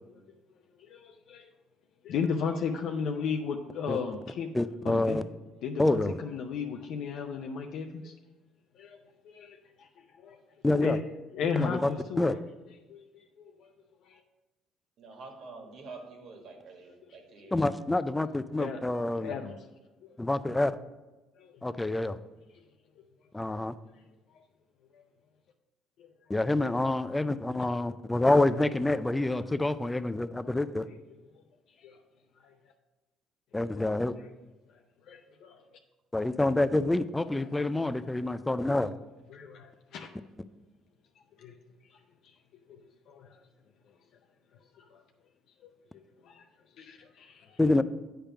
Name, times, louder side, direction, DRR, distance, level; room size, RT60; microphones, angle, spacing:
voice 1, 0.8-1.5 2.0-4.5 4.8-5.2 5.6-8.1 8.8-9.0 9.2-9.9 10.2-10.4 10.8-11.0 11.3-12.4 12.9-13.7 14.0-14.2 18.6-18.8 19.2-19.5 20.0-20.1 21.4-21.6 24.9-25.0 26.0-26.1 30.9-31.0 31.8-32.0 32.4-32.5 33.8-33.9 35.1-35.6 37.4-37.5 38.0-38.2 38.4-38.5 39.3-40.1 41.4-41.5 42.2-42.3 43.1-43.4 44.8-45.0 45.6-46.4 46.8-47.6, left 6 dB, 70° left, 3 dB, 0.5 m, -35 dB
voice 2, 4.5-5.2 5.8-6.1 10.6-11.0 11.6-11.9 12.2-12.3 17.5-19.3 20.2-20.7 21.6-22.2 23.3-23.7 26.3-30.9 33.5-34.1 36.1-38.9 47.6-47.8, left 2 dB, 10° left, 13 dB, 0.3 m, -27 dB
voice 3, 11.5-12.0 15.0-17.6, right 3 dB, 65° right, 2 dB, 1.5 m, -47 dB
8.8 x 3.5 x 5.7 m, 1.1 s
cardioid pair, 90°, 0 cm